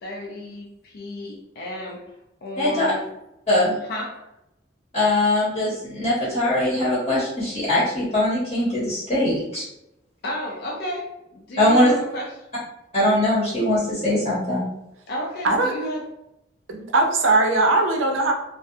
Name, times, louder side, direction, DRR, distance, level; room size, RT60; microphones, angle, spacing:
voice 1, 0.0-2.0 2.4-3.1 3.9-4.3 10.2-12.4 15.1-16.1, left 1 dB, 55° left, -2 dB, 0.4 m, -32 dB
voice 2, 2.6-2.9 3.5-3.8 4.9-9.6 11.6-11.9 12.9-14.6, left 1 dB, 35° left, -9 dB, 0.8 m, -21 dB
voice 3, 16.7-18.3, right 2 dB, 85° right, 2 dB, 0.5 m, -19 dB
2.4 x 2.1 x 2.6 m, 0.85 s
head